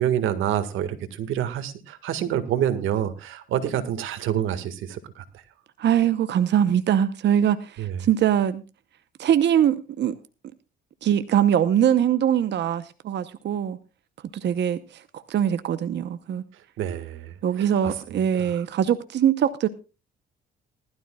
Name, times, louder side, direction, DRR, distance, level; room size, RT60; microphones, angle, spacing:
voice 1, 0.0-5.2 7.8-8.0 16.8-17.9, right 10 dB, 85° right, 1.8 m, -27 dB
voice 2, 5.8-8.6 9.2-10.1 11.0-13.8 14.3-16.4 17.4-19.7, right 9 dB, 60° right, 0.9 m, -22 dB
19.5 x 12.5 x 2.3 m
cardioid pair, 90°, 20 cm